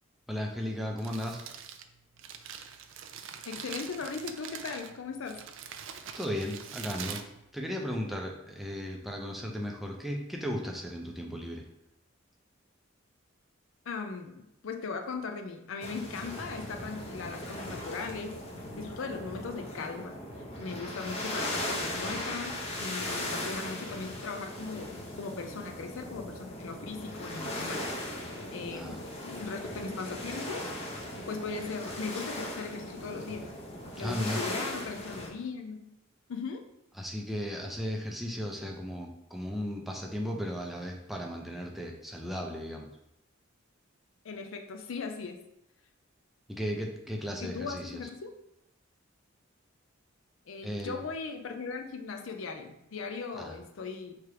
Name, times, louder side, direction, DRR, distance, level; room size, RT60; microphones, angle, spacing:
voice 1, 0.3-1.4 6.2-7.2 7.5-11.6 28.7-29.0 34.0-34.4 37.0-42.9 46.5-48.0 50.6-51.0 53.3-53.5, equal, ahead, 0 dB, 0.5 m, -35 dB
Crumpling crinkling, 0.9-8.1, right 8 dB, 70° right, 0.4 m, -44 dB
voice 2, 3.5-5.4 13.9-18.4 18.8-20.2 20.6-27.9 28.5-30.7 31.3-33.5 34.0-35.9 36.3-36.7 44.2-45.4 47.4-48.4 50.5-54.2, left 4 dB, 75° left, 5 dB, 0.5 m, -38 dB
sound 1, 15.8-35.3, left 1 dB, 30° left, 0.7 m, -38 dB
3.3 x 3.0 x 4.6 m, 0.83 s
head